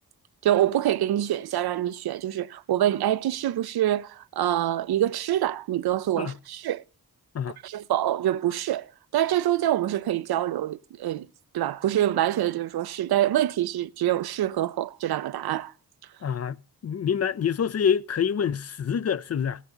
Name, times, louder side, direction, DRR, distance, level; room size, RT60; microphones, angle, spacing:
voice 1, 0.4-6.8 7.6-11.3 11.5-15.7, right 12 dB, 70° right, 0.5 m, -25 dB
voice 2, 16.2-16.6 16.8-19.6, left 7 dB, 40° left, 0.5 m, -26 dB
16.0 x 9.3 x 3.9 m
cardioid pair, 50°, 39 cm